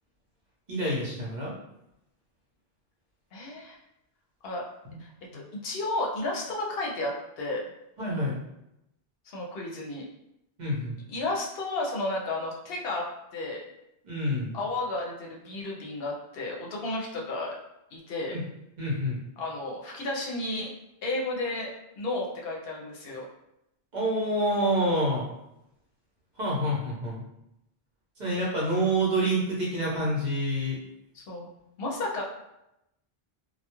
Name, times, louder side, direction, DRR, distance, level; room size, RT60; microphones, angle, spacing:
voice 1, 0.7-1.5 4.8-5.0 5.3-5.4 8.0-8.4 10.6-11.0 14.0-14.6 18.3-18.4 18.8-19.2 23.9-25.3 26.4-27.2 28.2-30.8, right 1 dB, 50° right, -6 dB, 0.8 m, -27 dB
voice 2, 3.3-3.8 4.4-4.6 5.0-7.7 9.3-10.1 11.1-13.0 13.3-13.6 14.5-17.5 17.9-18.3 19.4-20.7 21.0-21.7 22.0-23.3 31.1-31.5 31.8-32.2, left 2 dB, 70° left, -1 dB, 0.8 m, -32 dB
2.2 x 2.1 x 2.9 m, 0.86 s
omnidirectional pair, 1.0 m